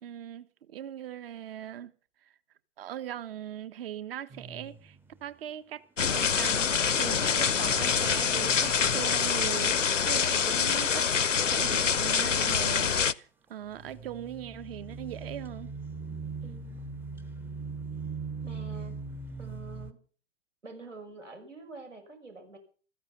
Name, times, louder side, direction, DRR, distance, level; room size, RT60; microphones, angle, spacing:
voice 1, 0.0-1.9 2.8-5.0 5.2-5.8 6.1-11.1 11.5-15.7, right 11 dB, 50° right, 1.4 m, -40 dB
sound 1, 4.3-5.2 6.8-11.3 11.7-12.2 13.6-19.9, right 4 dB, 5° right, 0.7 m, -41 dB
sound 2, 6.0-13.1, left 7 dB, 85° left, 0.7 m, -26 dB
voice 2, 16.4-16.9 18.4-18.9 19.4-20.0 20.6-22.6, right 3 dB, 85° right, 6.0 m, -47 dB
15.5 x 14.0 x 5.7 m
figure-of-eight pair, 110°, 36 cm